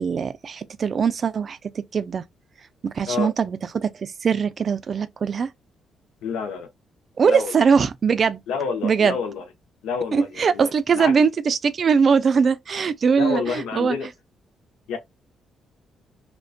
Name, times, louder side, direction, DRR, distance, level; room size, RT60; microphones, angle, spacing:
voice 1, 0.0-2.2 2.8-5.5 7.2-8.4 8.8-9.2 10.1-14.1, right 6 dB, 45° right, 0.3 m, -21 dB
voice 2, 6.2-6.7 7.2-7.5 8.5-9.4 9.8-10.7 10.9-11.1 13.2-14.1 14.9-15.0, left 5 dB, 90° left, 0.5 m, -28 dB
2.4 x 2.1 x 2.4 m
cardioid pair, 90°, 0 cm